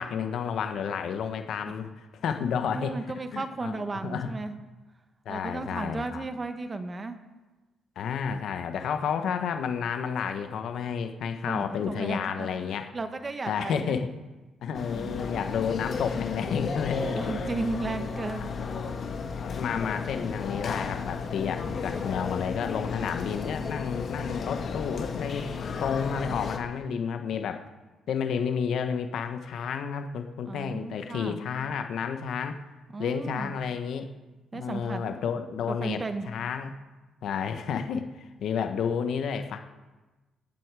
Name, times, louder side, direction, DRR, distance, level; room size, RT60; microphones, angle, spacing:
voice 1, 0.0-2.9 3.3-4.3 5.2-6.2 8.0-12.9 13.5-14.1 14.6-17.4 18.4-18.9 19.4-25.5 25.8-27.7 28.1-32.6 33.0-34.1 34.5-36.0 36.3-36.7 37.2-39.6, left 7 dB, 70° left, 7 dB, 1.0 m, -31 dB
voice 2, 2.7-4.6 5.3-7.2 11.5-14.0 14.9-15.5 17.1-18.5 30.5-31.4 32.9-33.5 34.5-35.0 35.7-36.3, right 3 dB, 30° right, 8 dB, 1.3 m, -35 dB
sound 1, 14.7-26.6, left 5 dB, 55° left, 1.6 m, -33 dB
18.0 x 8.1 x 4.8 m, 1.2 s
cardioid pair, 90°, 0 cm